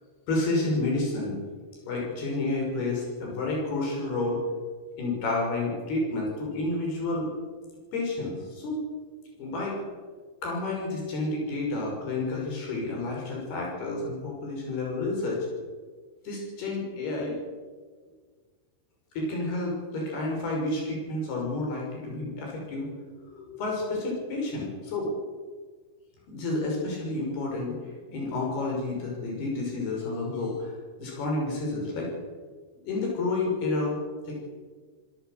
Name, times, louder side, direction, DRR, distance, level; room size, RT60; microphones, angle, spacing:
voice 1, 0.3-1.4 1.9-4.4 5.0-7.3 7.9-8.8 9.4-9.8 10.4-15.4 16.2-17.4 19.2-22.9 23.2-25.1 26.3-27.7 28.1-30.7 31.0-32.1 32.8-34.0 34.3-34.4, left 2 dB, 70° left, -1 dB, 8.0 m, -30 dB
25.5 x 17.5 x 6.7 m, 1.5 s
omnidirectional pair, 4.7 m